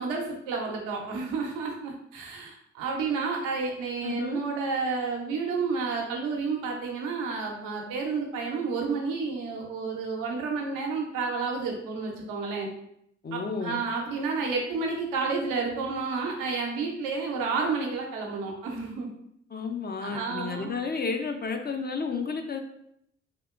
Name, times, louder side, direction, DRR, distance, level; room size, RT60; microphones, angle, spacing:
voice 1, 0.0-12.7 13.3-19.1 20.0-20.8, right 4 dB, 75° right, 0 dB, 0.8 m, -30 dB
voice 2, 4.0-4.4 13.2-13.8 19.5-22.6, left 5 dB, 30° left, 5 dB, 0.6 m, -32 dB
3.6 x 2.8 x 2.4 m, 0.73 s
hypercardioid pair, 45°, 33 cm